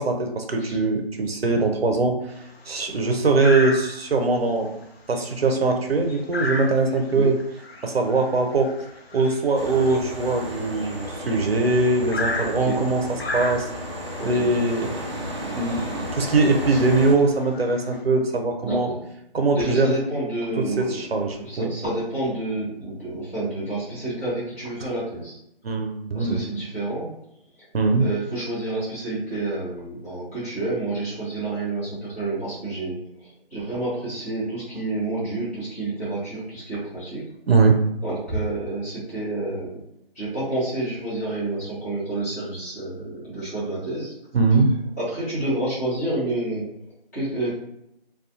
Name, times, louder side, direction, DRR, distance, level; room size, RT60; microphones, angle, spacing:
voice 1, 0.0-2.3 2.7-4.7 5.1-7.4 7.8-8.8 9.1-13.7 14.2-18.9 19.3-19.9 20.6-21.7 24.8-24.9 25.6-26.4 27.7-28.1 37.5-37.8 44.3-44.7, right 3 dB, 80° right, 4 dB, 0.6 m, -22 dB
sound 1, 2.3-2.7 3.4-4.2 4.7-4.8 5.1-11.4 12.1-14.0 15.0-15.1 15.5-15.6 16.2-16.4 16.8-18.0, left 2 dB, 90° left, 0.7 m, -33 dB
sound 2, 9.5-17.1, equal, 30° right, 0.5 m, -33 dB
voice 2, 12.4-12.8 14.2-14.5 16.7-16.8 18.6-19.0 19.5-25.4 26.1-27.1 28.0-37.3 38.0-39.8 40.1-44.1 45.0-46.7 47.1-47.5, right 2 dB, 15° left, -11 dB, 0.9 m, -29 dB
2.4 x 2.3 x 2.6 m, 0.78 s
figure-of-eight pair, 160°, 30 cm